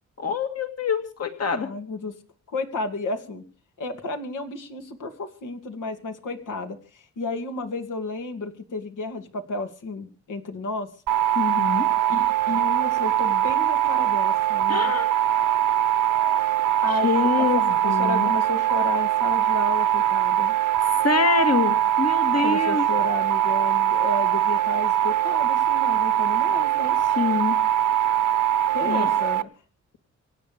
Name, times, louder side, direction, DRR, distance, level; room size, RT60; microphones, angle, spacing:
voice 1, 0.2-1.7 11.4-11.9 14.7-15.1 16.9-18.3 21.0-22.9 27.1-27.6 28.9-29.1, left 5 dB, 55° left, 7 dB, 2.0 m, -25 dB
voice 2, 1.6-2.1 2.5-3.4 3.8-10.9 12.1-14.9 16.8-20.5 22.4-26.9 28.7-29.5, left 2 dB, 85° left, 5 dB, 2.6 m, -32 dB
sound 1, 11.1-29.4, right 11 dB, 85° right, 1.1 m, -22 dB
25.5 x 9.4 x 5.1 m, 0.39 s
cardioid pair, 90°, 30 cm